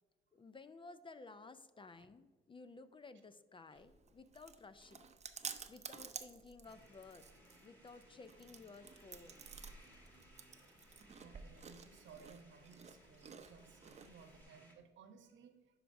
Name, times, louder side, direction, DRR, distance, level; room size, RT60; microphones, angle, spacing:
voice 1, 0.3-5.0 5.7-7.3 7.6-9.5, left 3 dB, 25° left, 12 dB, 0.4 m, -55 dB
Chewing mastication, 3.8-14.4, right 6 dB, 35° right, 0.6 m, -53 dB
sound 1, 6.6-14.7, equal, 10° left, 1.9 m, -65 dB
voice 2, 11.2-15.8, right 5 dB, 70° right, 7 dB, 0.9 m, -60 dB
11.0 x 4.6 x 2.6 m, 1.4 s
cardioid pair, 90°, 20 cm